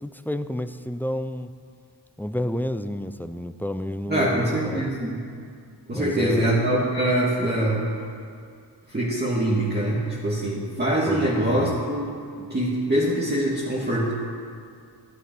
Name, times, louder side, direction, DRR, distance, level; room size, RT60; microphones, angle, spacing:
voice 1, 0.0-1.5 2.2-4.9 5.9-6.6 11.1-11.8, left 1 dB, 5° left, 10 dB, 0.4 m, -30 dB
voice 2, 4.1-5.2 5.9-7.9 8.9-14.1, right 1 dB, 25° right, -6 dB, 1.8 m, -24 dB
13.5 x 8.3 x 6.0 m, 2.3 s
wide cardioid pair, 75°, 42 cm